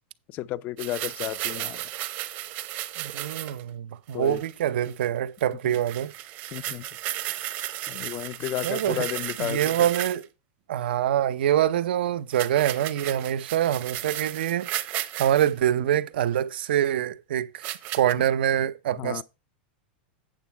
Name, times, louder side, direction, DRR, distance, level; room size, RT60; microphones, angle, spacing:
voice 1, 0.3-1.8 4.1-4.4 5.6-5.7 6.5-6.9 7.9-9.7 19.0-19.2, left 14 dB, 30° left, 0.3 m, -32 dB
sound 1, 0.8-3.6 4.1-4.5 4.8-5.0 5.4-5.5 5.7-10.2 12.3-15.5 16.3-16.4 17.6-18.1, right 14 dB, 35° right, 0.8 m, -34 dB
voice 2, 3.0-6.1 8.6-9.1 9.4-10.2 10.7-19.2, right 11 dB, 85° right, 0.7 m, -25 dB
9.0 x 6.2 x 4.5 m
supercardioid pair, 155°, 5 cm